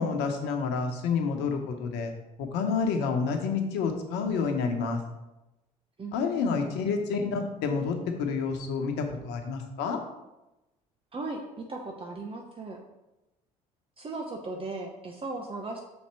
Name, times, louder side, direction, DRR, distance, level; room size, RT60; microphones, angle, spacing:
voice 1, 0.0-2.1 2.4-5.0 6.1-10.0, left 5 dB, 70° left, 4 dB, 1.2 m, -29 dB
voice 2, 6.0-6.8 11.1-12.8 14.0-15.8, right 3 dB, 30° right, 2 dB, 1.0 m, -37 dB
6.4 x 4.4 x 4.6 m, 0.99 s
hypercardioid pair, 60°, 18 cm